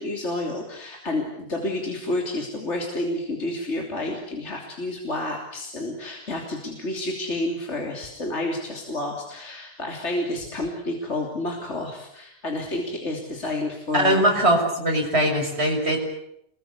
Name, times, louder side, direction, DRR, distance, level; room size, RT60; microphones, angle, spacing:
voice 1, 0.0-14.3, left 2 dB, 45° left, 1 dB, 3.6 m, -30 dB
voice 2, 13.9-16.0, right 1 dB, 40° right, 2 dB, 6.7 m, -21 dB
28.0 x 22.5 x 8.2 m, 0.77 s
omnidirectional pair, 1.6 m